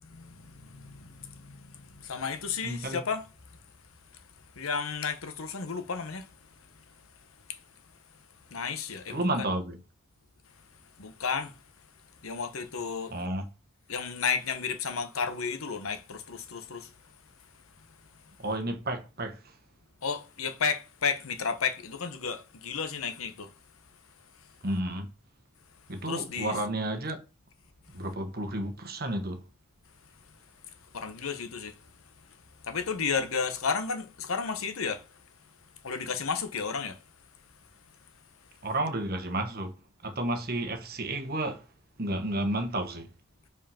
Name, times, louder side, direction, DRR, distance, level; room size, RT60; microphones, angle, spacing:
voice 1, 0.0-3.6 4.0-7.7 8.1-9.5 10.5-10.6 11.0-11.6 12.2-13.2 13.9-18.3 20.0-23.5 24.3-24.6 26.0-26.6 27.9-28.0 30.6-35.2 35.6-37.0 38.4-38.5, left 5 dB, 85° left, 1.0 m, -34 dB
voice 2, 2.6-3.0 9.1-9.8 13.1-13.5 18.4-19.4 24.6-25.1 25.9-27.2 27.9-29.4 38.6-39.7 40.0-41.6 42.0-43.1, right 1 dB, 45° right, 1.3 m, -31 dB
5.2 x 4.8 x 5.7 m
head